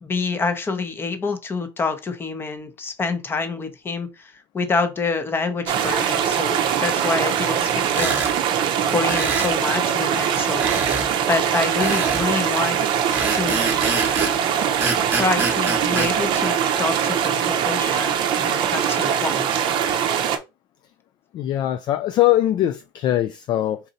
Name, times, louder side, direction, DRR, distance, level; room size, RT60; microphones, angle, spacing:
voice 1, 0.0-8.3 8.9-10.7 11.2-12.8 13.3-13.7 15.1-19.5, left 4 dB, 20° left, 0.8 m, -27 dB
sound 1, 5.7-20.4, right 8 dB, 45° right, 0.7 m, -22 dB
sound 2, 7.9-8.3 9.1-9.6 10.6-11.1 11.8-12.3 13.1-14.4 14.8-16.1, right 3 dB, 15° right, 1.1 m, -25 dB
voice 2, 21.3-23.8, left 13 dB, 40° left, 0.3 m, -21 dB
4.0 x 2.6 x 4.1 m
supercardioid pair, 130°, 12 cm